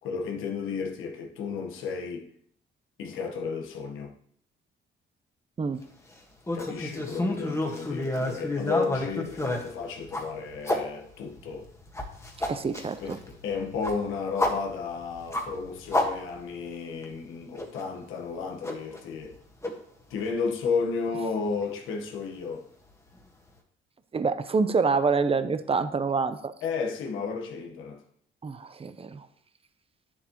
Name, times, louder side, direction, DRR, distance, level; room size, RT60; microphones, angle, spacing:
voice 1, 0.0-2.3 3.0-4.1 6.5-11.6 13.0-19.4 20.1-22.7 26.6-28.0, left 5 dB, 85° left, 1.3 m, -33 dB
sound 1, 6.5-10.8 11.3-16.7 17.0-17.1 17.6-17.8 18.6-19.3 19.6-19.7 20.2-20.3 21.6-21.7, left 1 dB, 15° left, 1.6 m, -30 dB
voice 2, 12.4-13.2 24.1-26.5 28.4-29.3, right 4 dB, 30° right, 0.7 m, -27 dB
9.6 x 7.5 x 3.1 m
cardioid pair, 90°, 20 cm